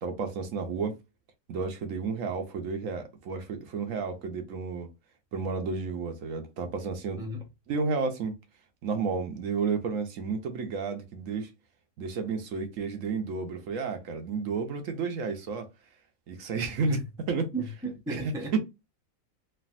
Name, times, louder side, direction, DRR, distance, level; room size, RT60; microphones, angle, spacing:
voice 1, 0.0-1.0 1.5-4.9 5.3-7.2 7.7-8.4 8.8-11.5 12.0-15.7 16.3-17.0 17.3-17.5 18.1-18.6, right 4 dB, 75° right, 1.1 m, -31 dB
voice 2, 7.2-7.5 16.9-17.0 17.5-18.6, right 3 dB, 5° right, 0.6 m, -35 dB
3.2 x 2.5 x 2.4 m
omnidirectional pair, 1.4 m